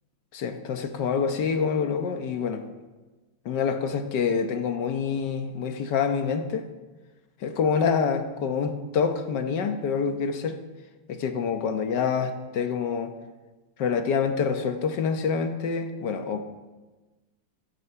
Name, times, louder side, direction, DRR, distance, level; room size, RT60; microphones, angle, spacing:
voice 1, 0.3-2.7 3.4-6.6 7.4-10.6 11.1-13.1 13.8-16.4, left 6 dB, 70° left, 7 dB, 1.6 m, -26 dB
12.5 x 8.5 x 6.8 m, 1.2 s
omnidirectional pair, 2.0 m